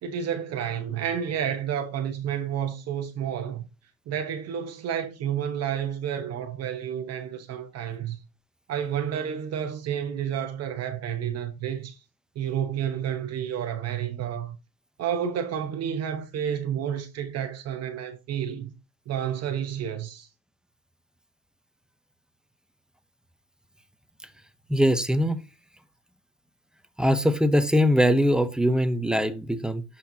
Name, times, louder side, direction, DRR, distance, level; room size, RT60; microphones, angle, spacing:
voice 1, 0.0-3.6 4.1-8.2 8.7-12.0 12.3-14.6 15.0-18.7 19.1-20.3, right 9 dB, 50° right, 1.1 m, -30 dB
voice 2, 24.7-25.4 27.0-29.8, equal, ahead, 0.7 m, -22 dB
12.0 x 4.4 x 2.7 m
cardioid pair, 115°, 32 cm